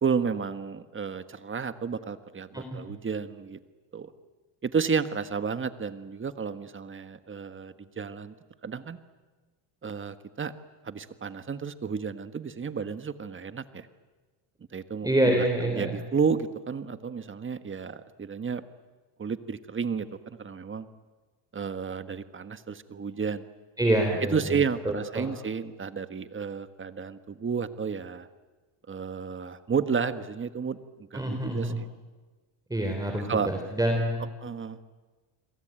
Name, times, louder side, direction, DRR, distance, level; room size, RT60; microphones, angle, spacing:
voice 1, 0.0-3.6 3.9-4.1 4.6-8.3 8.6-9.0 9.8-10.5 10.8-13.9 14.7-18.6 19.2-20.9 21.5-23.4 24.3-28.3 28.9-30.8 31.1-31.9 33.2-33.5 34.4-34.8, right 6 dB, 25° right, 11 dB, 1.5 m, -32 dB
voice 2, 15.0-15.9 23.8-24.6 24.9-25.3 31.1-31.8 32.7-34.3, right 1 dB, 5° right, 3 dB, 3.7 m, -26 dB
29.5 x 22.0 x 9.0 m, 1.3 s
cardioid pair, 120°, 49 cm